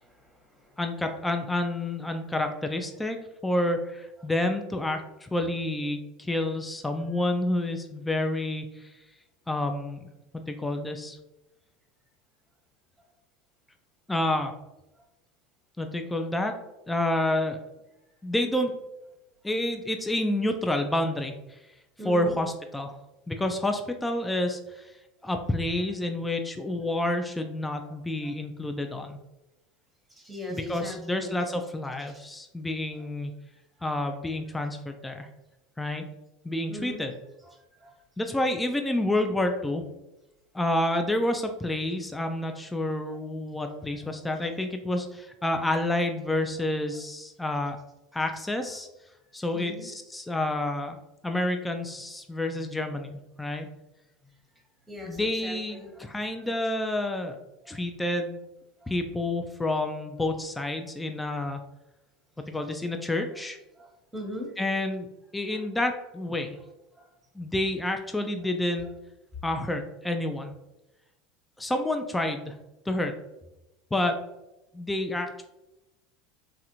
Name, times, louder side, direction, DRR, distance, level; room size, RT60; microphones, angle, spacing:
voice 1, 0.0-0.7 22.0-22.4 28.2-28.3 30.1-31.4 32.1-32.3 36.7-37.0 37.5-37.9 44.4-44.5 49.5-49.9 54.9-56.1 56.4-56.5 57.6-57.8 58.8-58.9 62.5-62.7 63.8-64.5 65.5-65.6 67.0-67.1, left 1 dB, 10° right, 1 dB, 0.9 m, -41 dB
voice 2, 0.8-3.2 3.4-8.9 9.5-10.1 10.3-11.2 14.1-14.5 15.8-16.5 16.9-17.6 18.2-18.7 19.4-21.6 22.0-23.0 23.3-24.9 25.2-29.2 30.5-33.3 33.8-35.3 35.8-36.0 36.4-37.1 38.2-39.8 40.5-47.8 48.1-48.9 49.3-51.0 51.2-53.1 53.4-53.7 55.1-57.4 57.7-58.4 58.9-61.6 62.5-63.6 64.6-65.1 65.3-66.6 67.4-68.9 69.4-70.5 71.6-72.6 72.9-73.1 73.9-74.2 74.7-75.4, left 1 dB, 10° left, 5 dB, 0.3 m, -29 dB
3.1 x 2.4 x 2.9 m, 0.95 s
hypercardioid pair, 90°, 0 cm